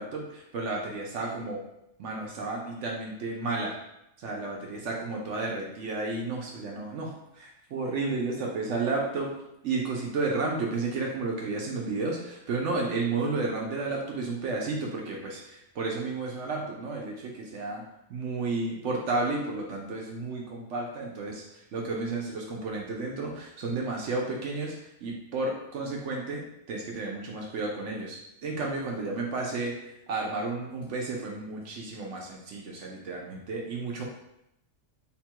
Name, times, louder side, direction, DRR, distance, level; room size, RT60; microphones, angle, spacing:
voice 1, 0.0-1.6 2.0-3.8 4.2-9.3 9.6-17.8 18.1-24.7 25.0-34.0, right 3 dB, 70° right, -1 dB, 0.9 m, -32 dB
3.6 x 2.3 x 4.4 m, 0.84 s
omnidirectional pair, 1.3 m